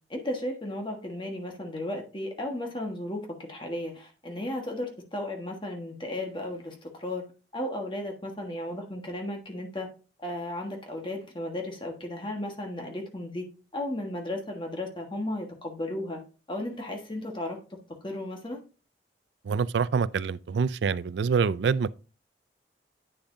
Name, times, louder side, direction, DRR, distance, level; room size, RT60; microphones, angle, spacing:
voice 1, 0.1-7.2 7.5-9.9 10.2-13.5 13.7-16.2 16.5-17.6 18.0-18.6, left 1 dB, 30° left, 1.3 m, -34 dB
voice 2, 19.4-21.9, right 5 dB, 85° right, 0.4 m, -26 dB
9.4 x 6.9 x 2.6 m
head